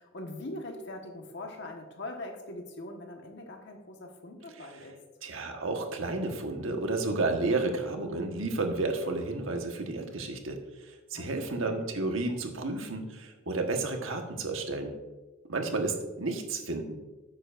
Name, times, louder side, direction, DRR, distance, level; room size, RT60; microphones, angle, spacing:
voice 1, 0.0-5.0 11.1-11.8 15.9-16.0, left 1 dB, 55° left, 3 dB, 1.4 m, -42 dB
voice 2, 5.2-10.6 10.9-14.9 15.5-16.9, right 3 dB, 75° right, 3 dB, 1.4 m, -31 dB
12.5 x 9.5 x 2.6 m, 1.2 s
head